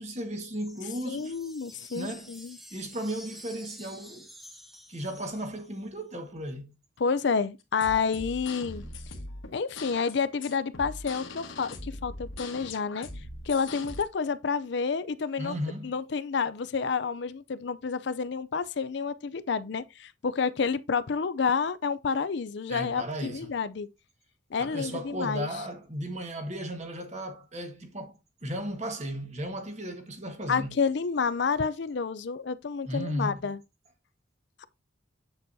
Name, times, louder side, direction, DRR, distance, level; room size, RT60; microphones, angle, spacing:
voice 1, 0.0-1.3 1.9-2.4 2.7-4.3 4.9-6.8 15.4-15.9 22.7-23.5 24.6-28.1 28.4-30.8 32.9-33.5, equal, 35° right, 1.5 m, -35 dB
sound 1, 0.5-6.0, left 1 dB, ahead, 0.7 m, -50 dB
voice 2, 1.1-2.6 7.0-8.8 9.5-13.1 13.5-15.6 15.8-23.9 24.5-25.5 30.5-33.6, left 5 dB, 60° left, 0.5 m, -29 dB
sound 2, 7.6-14.0, left 2 dB, 80° left, 1.4 m, -41 dB
7.8 x 6.8 x 2.7 m
head